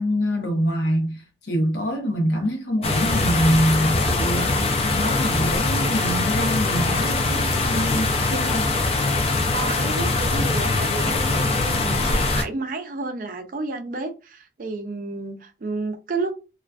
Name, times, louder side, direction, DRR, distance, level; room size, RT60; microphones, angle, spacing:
voice 1, 0.0-8.7, equal, 80° left, 0.7 m, -25 dB
sound 1, 2.8-12.4, left 3 dB, 35° left, 0.4 m, -22 dB
voice 2, 9.5-16.3, right 3 dB, 50° right, 0.4 m, -31 dB
2.3 x 2.3 x 2.3 m
head